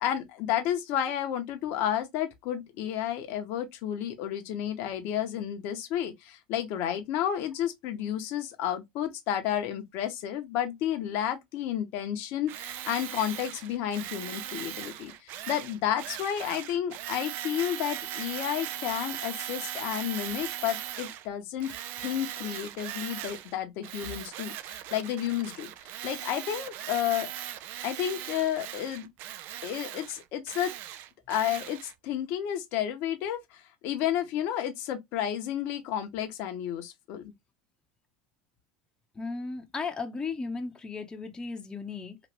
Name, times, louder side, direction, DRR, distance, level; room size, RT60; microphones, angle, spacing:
voice 1, 0.0-21.7 22.0-25.7 26.0-27.3 27.8-29.1 29.6-30.7 31.3-37.3, left 10 dB, 60° left, 0.7 m, -31 dB
Tools, 12.5-21.3 21.6-23.5 23.8-31.9, right 12 dB, 60° right, 0.4 m, -39 dB
voice 2, 39.1-42.2, left 4 dB, 20° left, 0.7 m, -35 dB
3.0 x 2.5 x 3.0 m
supercardioid pair, 95°, 4 cm